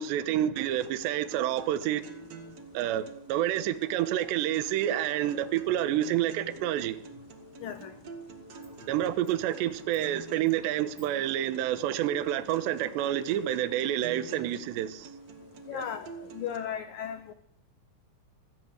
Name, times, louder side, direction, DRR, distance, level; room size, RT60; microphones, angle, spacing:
voice 1, 0.0-2.0 2.7-7.0 8.9-15.1 15.7-15.8, right 12 dB, 75° right, 3.1 m, -28 dB
sound 1, 0.6-16.6, right 4 dB, 45° right, 2.3 m, -47 dB
voice 2, 7.6-7.9 15.7-17.3, left 9 dB, 85° left, 1.9 m, -36 dB
23.5 x 16.0 x 8.1 m
omnidirectional pair, 5.6 m